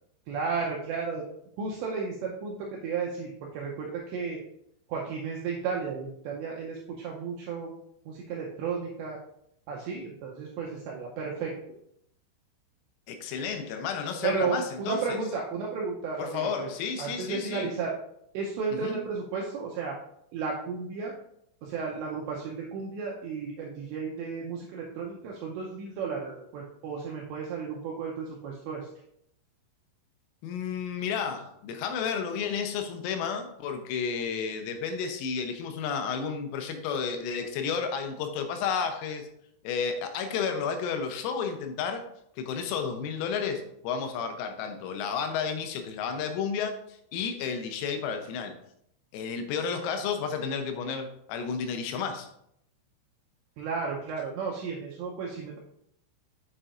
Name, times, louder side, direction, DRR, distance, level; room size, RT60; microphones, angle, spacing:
voice 1, 0.3-1.2 1.6-4.4 4.9-7.7 8.1-9.2 9.7-11.5 14.2-16.7 17.0-17.9 18.3-20.0 20.3-21.1 21.6-28.9 53.6-55.6, right 5 dB, 85° right, -1 dB, 2.5 m, -33 dB
voice 2, 13.1-15.2 16.2-17.7 18.8-19.0 30.4-39.3 39.7-42.1 42.4-48.6 49.1-52.3, left 6 dB, 85° left, 7 dB, 3.5 m, -32 dB
7.5 x 7.0 x 2.5 m, 0.75 s
omnidirectional pair, 6.0 m